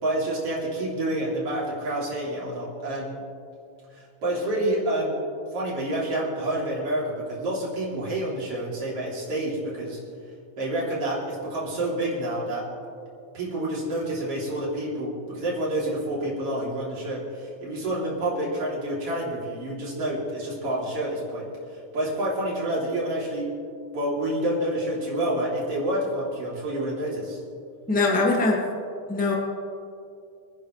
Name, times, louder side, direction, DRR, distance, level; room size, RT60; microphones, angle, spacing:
voice 1, 0.0-3.2 4.0-5.2 5.5-10.0 10.6-12.7 13.3-21.5 21.9-23.6 23.9-27.4, right 1 dB, 45° right, -5 dB, 3.8 m, -28 dB
voice 2, 27.9-28.7 29.1-29.3, left 3 dB, 5° left, -1 dB, 0.8 m, -22 dB
25.5 x 10.5 x 3.2 m, 2.4 s
omnidirectional pair, 3.7 m